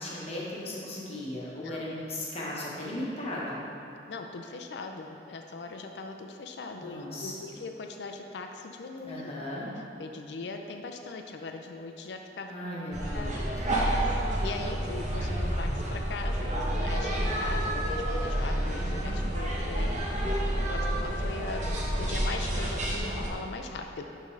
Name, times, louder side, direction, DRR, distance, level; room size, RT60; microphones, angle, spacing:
voice 1, 0.0-3.6 6.8-7.3 9.1-9.7 12.5-13.3, left 1 dB, 35° left, -6 dB, 1.1 m, -36 dB
voice 2, 4.1-9.2 10.0-12.5 13.1-20.1 20.7-24.0, left 3 dB, 70° left, 4 dB, 0.4 m, -40 dB
sound 1, 12.9-23.3, right 1 dB, 45° right, 0.8 m, -29 dB
9.1 x 3.7 x 3.2 m, 2.7 s
head